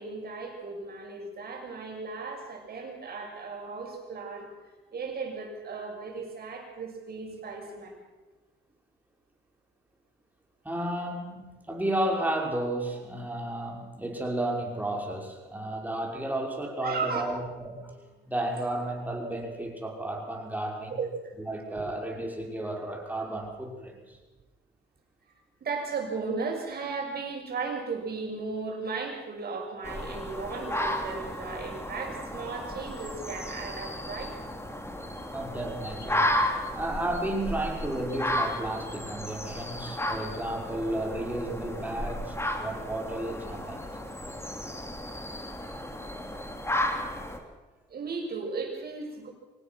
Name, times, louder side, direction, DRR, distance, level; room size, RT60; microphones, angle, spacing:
voice 1, 0.0-4.5 4.9-8.0 16.8-17.3 17.8-18.3 20.9-21.3 25.6-34.3 39.9-40.0 47.9-49.3, right 4 dB, 50° right, 1 dB, 6.7 m, -36 dB
voice 2, 10.6-18.0 18.3-21.0 21.4-24.2 35.3-36.3 36.7-43.8, right 1 dB, 10° right, 0 dB, 5.8 m, -33 dB
sound 1, 29.8-47.4, left 1 dB, 15° left, 3.1 m, -33 dB
24.5 x 18.5 x 6.3 m, 1.2 s
cardioid pair, 90°, 20 cm